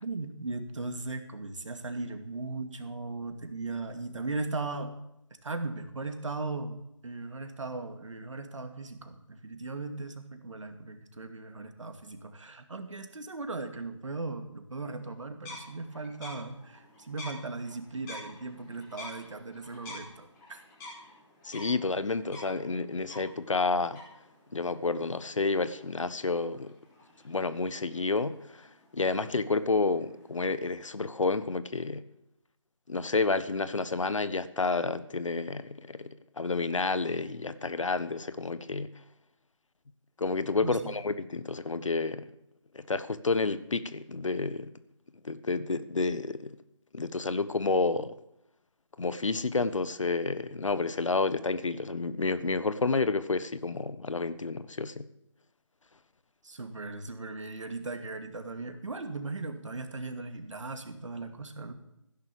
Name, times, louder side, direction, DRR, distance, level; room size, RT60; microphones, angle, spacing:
voice 1, 0.0-4.9 5.4-20.6 40.5-41.0 56.4-61.7, right 3 dB, 70° right, 2.4 m, -38 dB
sound 1, 15.4-30.8, left 2 dB, 15° left, 4.9 m, -50 dB
voice 2, 21.4-24.0 24.5-26.7 27.2-28.7 28.9-32.0 32.9-38.9 40.2-42.3 42.7-44.7 45.2-46.5 46.9-48.1 49.0-55.1, left 3 dB, 70° left, 1.3 m, -30 dB
15.5 x 11.0 x 7.0 m
figure-of-eight pair, 160°, 17 cm